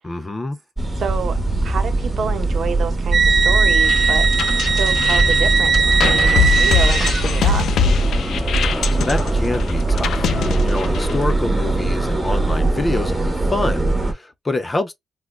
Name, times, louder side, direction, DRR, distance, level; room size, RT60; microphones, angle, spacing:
voice 1, 0.0-0.6 8.9-10.3 10.6-14.9, left 2 dB, 20° left, 0.5 m, -26 dB
sound 1, 0.8-14.1, right 2 dB, 10° right, 1.1 m, -21 dB
voice 2, 1.0-4.3 4.7-7.7, right 6 dB, 60° right, 0.8 m, -28 dB
sound 2, 3.1-7.6, right 5 dB, 35° right, 0.4 m, -18 dB
sound 3, 3.8-11.3, left 6 dB, 80° left, 0.5 m, -22 dB
3.6 x 2.2 x 2.3 m
wide cardioid pair, 155°, 0 cm